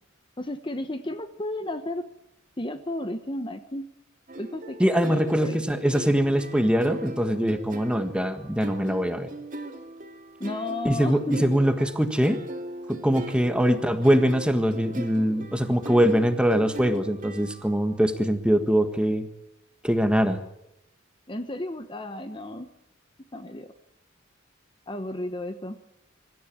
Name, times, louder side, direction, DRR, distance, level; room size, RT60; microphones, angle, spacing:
voice 1, 0.4-2.0 2.6-3.8 4.4-5.1 5.4-5.6 10.4-11.5 21.3-22.7 23.3-23.7 24.9-25.8, left 1 dB, 25° left, 9 dB, 1.0 m, -33 dB
sound 1, 4.3-17.9, right 2 dB, 40° right, 2.2 m, -39 dB
voice 2, 4.8-9.3 10.8-12.4 12.9-19.3 19.8-20.4, equal, 5° right, 8 dB, 1.5 m, -23 dB
24.5 x 13.5 x 8.8 m, 0.86 s
head